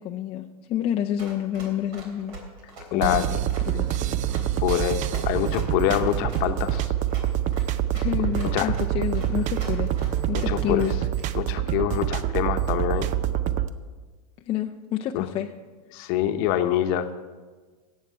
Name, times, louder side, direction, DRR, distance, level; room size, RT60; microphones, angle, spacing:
voice 1, 0.0-2.4 2.9-3.2 3.7-3.9 7.9-9.9 10.3-10.9 14.5-15.5, left 11 dB, 30° left, 3 dB, 0.5 m, -28 dB
Run, 1.2-11.2, right 3 dB, 60° right, 3.5 m, -42 dB
voice 2, 2.9-3.3 4.6-6.9 8.5-8.7 10.5-10.8 11.4-13.1 15.1-15.3 15.9-17.1, left 12 dB, 50° left, 8 dB, 1.0 m, -25 dB
sound 1, 3.0-13.7, right 12 dB, 35° right, 0.5 m, -26 dB
17.5 x 7.3 x 4.6 m, 1.4 s
hypercardioid pair, 115°, 20 cm